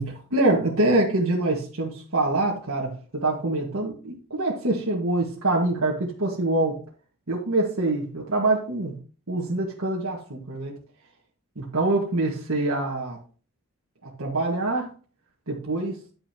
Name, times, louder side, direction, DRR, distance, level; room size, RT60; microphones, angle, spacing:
voice 1, 0.0-6.8 7.3-8.9 9.3-10.8 11.6-13.2 14.0-14.9 15.5-16.0, right 2 dB, 70° right, -3 dB, 1.7 m, -25 dB
10.0 x 9.7 x 2.9 m, 0.37 s
head